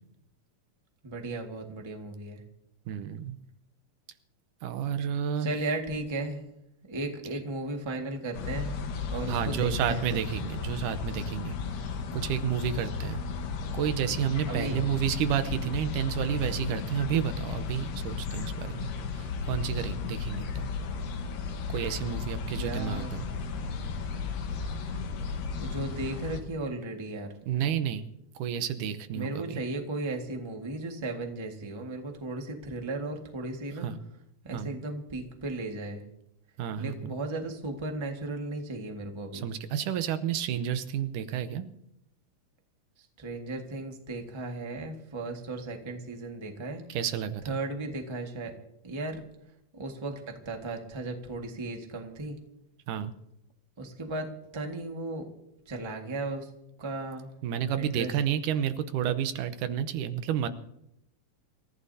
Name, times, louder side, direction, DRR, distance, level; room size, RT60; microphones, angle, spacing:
voice 1, 1.0-2.4 5.4-6.4 6.9-10.2 14.5-14.8 22.5-23.1 25.6-27.3 29.1-33.9 34.4-36.0 36.8-39.5 43.0-46.8 47.5-48.5 48.8-49.2 49.7-52.4 53.8-54.3 54.5-55.3 55.7-56.5 56.8-57.3 57.7-58.1, right 2 dB, 20° right, 3 dB, 0.8 m, -35 dB
voice 2, 2.9-3.4 4.6-5.5 9.3-11.6 12.1-13.2 13.7-20.7 21.7-23.2 27.5-28.0 28.4-29.6 33.8-34.0 34.5-34.7 36.6-37.1 39.3-41.7 46.9-47.6 52.9-53.1 57.4-60.5, right 9 dB, 80° right, 11 dB, 2.4 m, -30 dB
sound 1, 8.3-26.4, left 5 dB, 80° left, 2.9 m, -34 dB
27.5 x 15.0 x 2.8 m, 0.79 s
omnidirectional pair, 3.7 m